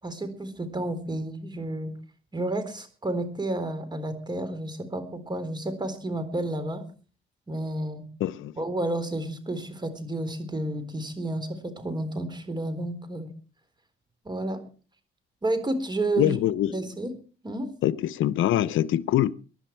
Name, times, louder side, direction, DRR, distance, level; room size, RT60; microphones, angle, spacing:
voice 1, 0.0-1.9 2.3-6.8 7.5-8.1 8.6-13.3 14.2-14.6 15.4-16.4 16.7-17.1 17.4-17.7, right 1 dB, 20° right, 3.9 m, -31 dB
voice 2, 8.2-8.5 16.2-16.8 17.8-19.3, left 12 dB, 80° left, 0.7 m, -24 dB
23.5 x 11.0 x 4.5 m
cardioid pair, 90°, 20 cm